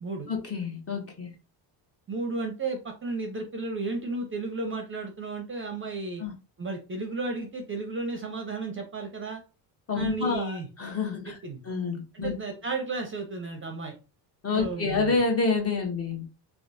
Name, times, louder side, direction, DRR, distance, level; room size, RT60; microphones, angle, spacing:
voice 1, 0.3-1.3 6.2-6.3 9.9-11.4 11.6-12.4 14.4-16.3, left 4 dB, 30° left, 1 dB, 0.9 m, -28 dB
voice 2, 2.1-6.2 6.6-9.4 9.9-10.7 11.3-11.6 12.1-13.9 14.5-15.1, right 3 dB, 25° right, 3 dB, 0.6 m, -33 dB
2.9 x 2.1 x 2.6 m, 0.32 s
cardioid pair, 100°, 48 cm